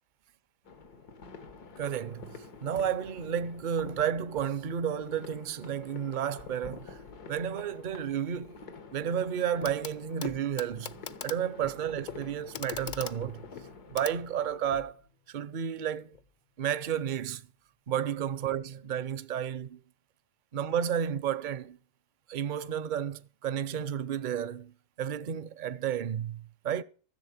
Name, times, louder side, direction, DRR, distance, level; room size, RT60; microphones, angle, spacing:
sound 1, 0.6-14.7, left 4 dB, 80° left, 2.2 m, -49 dB
voice 1, 1.8-7.0 7.3-8.6 8.9-10.9 11.2-13.4 13.9-15.0 15.3-16.2 16.6-17.4 17.9-19.8 20.5-21.8 22.3-24.7 25.0-26.8, right 9 dB, 50° right, 0.6 m, -32 dB
Clock, 9.6-9.9 10.2-14.9 16.1-16.2, left 7 dB, 55° left, 0.5 m, -42 dB
14.0 x 7.5 x 7.4 m
omnidirectional pair, 1.7 m